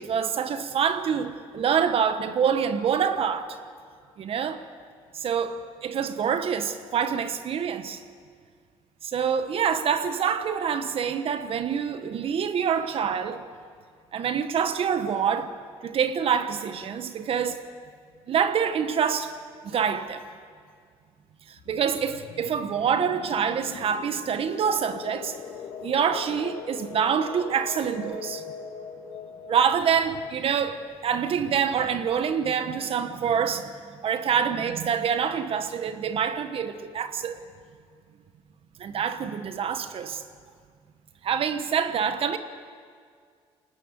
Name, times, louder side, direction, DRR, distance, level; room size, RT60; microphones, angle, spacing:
voice 1, 0.0-3.6 4.2-4.6 5.1-8.0 9.0-13.4 14.1-15.5 15.8-17.6 18.3-19.3 19.6-20.3 21.7-25.3 25.8-28.4 29.5-33.7 34.0-37.4 38.8-40.2 41.2-42.4, right 7 dB, 55° right, 1.3 m, -26 dB
sound 1, 21.5-32.0, left 6 dB, 85° left, 2.4 m, -42 dB
21.5 x 19.0 x 8.2 m
cardioid pair, 85°, 11 cm